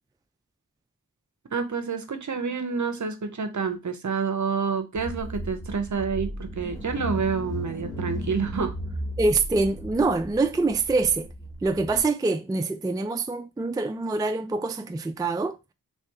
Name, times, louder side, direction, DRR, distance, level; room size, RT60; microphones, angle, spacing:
voice 1, 1.5-8.7, right 5 dB, 55° right, 0.7 m, -28 dB
Car / Engine, 5.0-12.0, equal, 10° left, 1.1 m, -35 dB
voice 2, 9.2-11.3 11.6-15.6, right 3 dB, 10° right, 0.4 m, -25 dB
3.3 x 3.2 x 2.8 m
cardioid pair, 40°, 36 cm